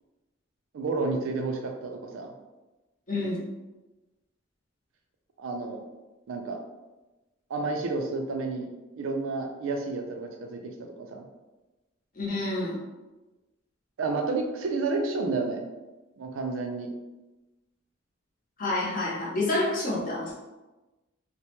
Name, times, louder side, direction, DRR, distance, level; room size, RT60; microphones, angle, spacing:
voice 1, 0.7-2.3 5.4-5.9 6.3-6.6 7.5-11.2 14.0-15.6 16.2-16.9, right 3 dB, 85° right, 4 dB, 0.4 m, -31 dB
voice 2, 3.1-3.4 12.2-12.7 18.6-20.3, left 2 dB, 45° left, -5 dB, 0.7 m, -28 dB
2.2 x 2.1 x 2.9 m, 1.1 s
head